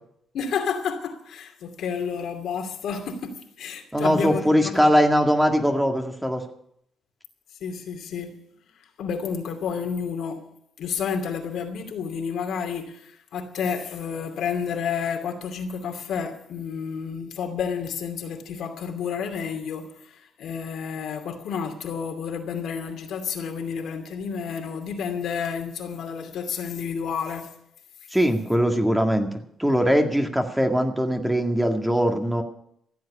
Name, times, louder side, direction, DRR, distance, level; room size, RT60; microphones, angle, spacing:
voice 1, 0.3-4.9 7.6-8.3 8.8-10.4 10.8-27.5, left 6 dB, 75° left, 2.6 m, -30 dB
voice 2, 3.9-6.4 28.1-29.3 29.6-32.4, equal, 5° right, 1.9 m, -21 dB
15.0 x 8.0 x 9.8 m
cardioid pair, 90°, 0 cm